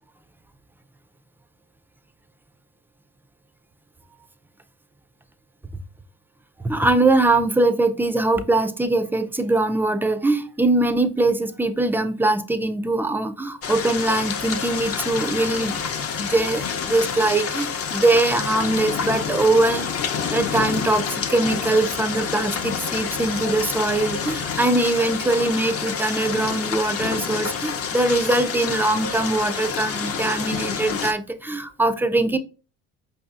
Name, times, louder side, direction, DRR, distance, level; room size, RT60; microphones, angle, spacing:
voice 1, 6.6-15.8 16.2-32.4, right 2 dB, 5° right, 0.3 m, -22 dB
sound 1, 13.6-31.1, left 6 dB, 45° left, 0.6 m, -28 dB
4.9 x 2.7 x 2.4 m
supercardioid pair, 80°, 33 cm